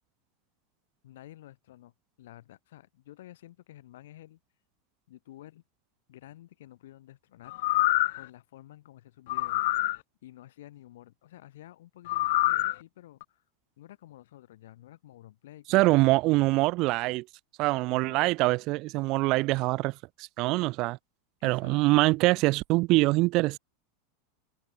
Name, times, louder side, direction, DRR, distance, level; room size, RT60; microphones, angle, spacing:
voice 1, 1.0-1.9 2.2-4.4 5.1-5.6 6.1-7.6 8.1-9.7 10.2-13.4 13.8-16.0 17.9-18.6 21.4-21.8, left 14 dB, 75° left, 4.0 m, -51 dB
sound 1, 7.5-8.3 9.3-10.0 12.1-12.7 13.2-13.3, left 19 dB, 55° left, 0.4 m, -26 dB
voice 2, 15.7-17.2 17.6-21.0 21.4-23.6, right 22 dB, 35° right, 0.4 m, -24 dB
supercardioid pair, 180°, 0 cm